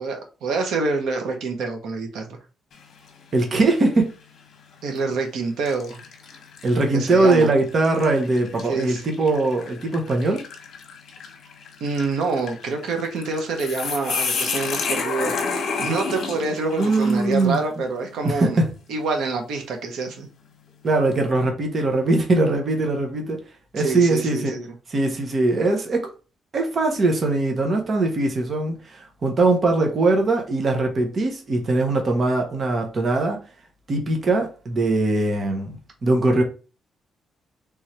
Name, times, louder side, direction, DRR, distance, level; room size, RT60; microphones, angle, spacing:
voice 1, 0.0-2.4 4.8-6.0 6.9-7.5 8.6-9.0 11.8-18.6 18.9-20.3 23.8-24.7, right 4 dB, 85° right, 1.2 m, -26 dB
sound 1, 2.7-3.2 3.7-3.9 4.8-5.0 5.7-17.7, left 5 dB, 60° left, 1.0 m, -31 dB
voice 2, 3.3-4.1 6.6-10.4 16.8-17.6 18.2-18.7 20.8-23.4 23.7-24.5 24.9-26.1 26.5-33.4 33.9-36.4, right 2 dB, 35° right, 0.9 m, -21 dB
3.6 x 3.2 x 4.3 m
cardioid pair, 170°, 0 cm